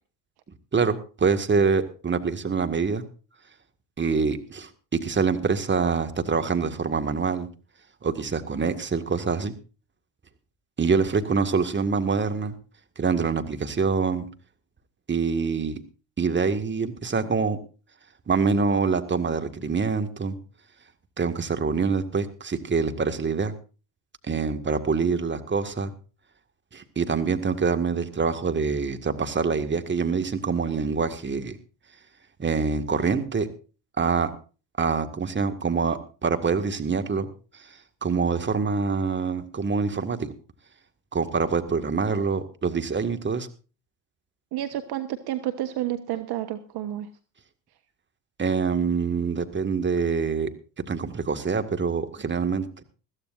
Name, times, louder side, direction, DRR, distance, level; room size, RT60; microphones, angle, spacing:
voice 1, 0.7-3.0 4.0-7.5 8.0-9.5 10.8-12.5 13.0-14.3 15.1-15.8 16.2-17.6 18.3-20.4 21.2-23.5 24.3-25.9 26.7-31.6 32.4-33.5 34.0-34.3 34.8-37.3 37.5-40.3 41.1-43.5 48.4-50.5 50.8-52.8, right 5 dB, 20° right, 7 dB, 1.9 m, -25 dB
voice 2, 44.5-47.1, right 13 dB, 50° right, 10 dB, 1.2 m, -30 dB
21.5 x 14.5 x 2.6 m, 0.36 s
hypercardioid pair, 70°, 50 cm